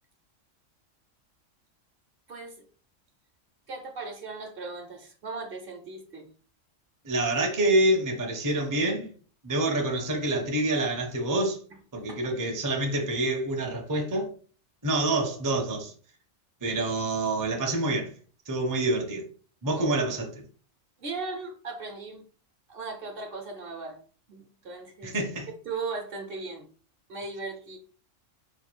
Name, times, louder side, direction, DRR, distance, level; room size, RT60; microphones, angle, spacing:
voice 1, 3.7-6.3 12.1-12.2 19.7-19.9 21.0-22.2 22.7-24.0 24.3-25.2 25.7-26.7 27.1-27.8, right 3 dB, 55° right, 0.8 m, -37 dB
voice 2, 7.0-9.1 9.4-11.6 11.9-14.3 14.8-15.9 16.6-18.1 18.5-19.2 19.6-20.4 25.0-25.5, right 1 dB, 25° right, 0.5 m, -27 dB
3.2 x 2.3 x 4.3 m
omnidirectional pair, 1.3 m